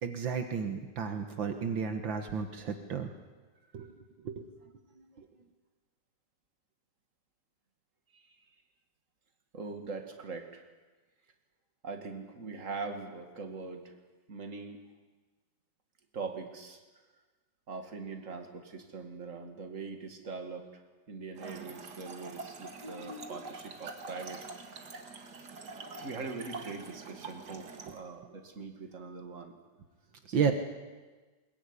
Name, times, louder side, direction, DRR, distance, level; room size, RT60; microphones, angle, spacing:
voice 1, 0.0-3.1 3.7-3.9 4.2-4.5 5.2-5.3 27.9-28.0 30.3-30.5, right 6 dB, 75° right, 6 dB, 2.2 m, -32 dB
voice 2, 9.5-10.7 11.8-13.9 14.3-14.8 16.1-16.8 17.7-20.8 21.1-24.5 25.5-29.6 30.3-30.5, right 4 dB, 40° right, 5 dB, 2.6 m, -42 dB
Trickle dribble / Fill (with liquid), 21.3-28.0, right 3 dB, 55° right, 2.5 m, -45 dB
21.5 x 21.5 x 9.8 m, 1.3 s
omnidirectional pair, 2.1 m